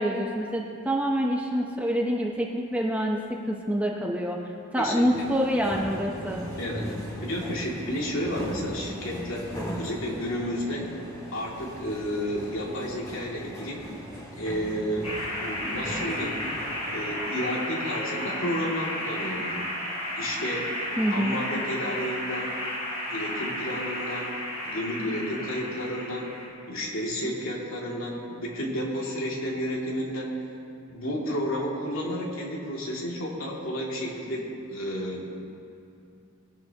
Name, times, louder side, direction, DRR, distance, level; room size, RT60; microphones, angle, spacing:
voice 1, 0.0-4.4 4.7-6.4 21.0-21.4, equal, 5° right, -1 dB, 0.8 m, -26 dB
voice 2, 4.8-5.2 6.6-6.9 7.2-10.9 11.3-13.8 14.3-16.4 16.9-19.6 20.2-20.7 21.1-22.5 23.1-26.3 26.7-30.4 30.9-35.3, equal, 65° left, -3 dB, 2.4 m, -31 dB
sound 1, 5.0-17.1, equal, 15° left, 1.8 m, -39 dB
sound 2, 15.0-26.5, left 1 dB, 30° left, 3.1 m, -33 dB
21.0 x 10.5 x 2.9 m, 2.7 s
head